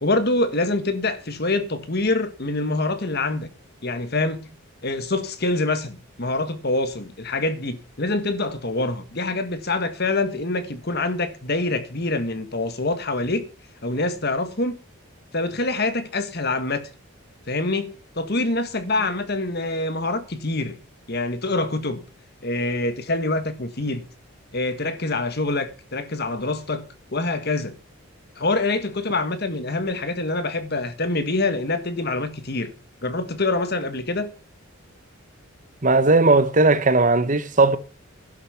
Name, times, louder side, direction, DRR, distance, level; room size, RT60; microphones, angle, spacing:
voice 1, 0.0-3.5 3.8-4.5 4.8-13.5 13.8-14.8 15.3-16.9 17.5-20.8 21.1-22.0 22.4-24.0 24.5-26.8 27.1-27.8 28.4-32.7 33.0-34.3, left 2 dB, 45° left, 1.5 m, -25 dB
voice 2, 35.8-37.8, right 3 dB, 35° right, 0.8 m, -17 dB
11.5 x 10.5 x 5.8 m
head